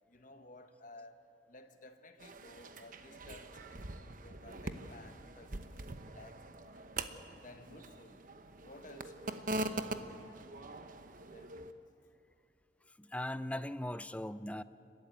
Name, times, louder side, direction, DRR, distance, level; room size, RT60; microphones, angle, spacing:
voice 1, 0.1-6.9 7.4-10.9 11.3-11.7, left 2 dB, 50° left, 1.4 m, -56 dB
sound 1, 2.2-11.7, right 2 dB, 50° right, 1.0 m, -43 dB
voice 2, 13.0-14.6, left 1 dB, 10° left, 0.5 m, -39 dB
29.5 x 13.0 x 9.3 m
head